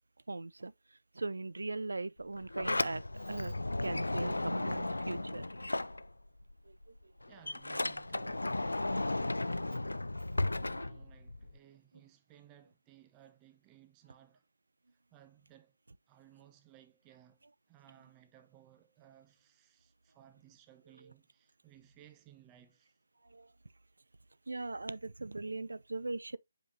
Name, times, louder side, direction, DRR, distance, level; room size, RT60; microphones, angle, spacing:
voice 1, 0.3-0.7 1.2-3.0 3.3-3.5 3.8-5.7 6.7-6.8 23.3-23.5 24.5-26.4, right 3 dB, 75° right, 0.4 m, -39 dB
Sliding door, 2.2-6.5 6.8-11.6, left 2 dB, 85° left, 0.4 m, -35 dB
voice 2, 7.3-9.9 10.4-14.4 15.1-15.8 16.1-23.0, right 12 dB, 20° right, 0.9 m, -61 dB
7.5 x 5.3 x 2.8 m
figure-of-eight pair, 150°, 0 cm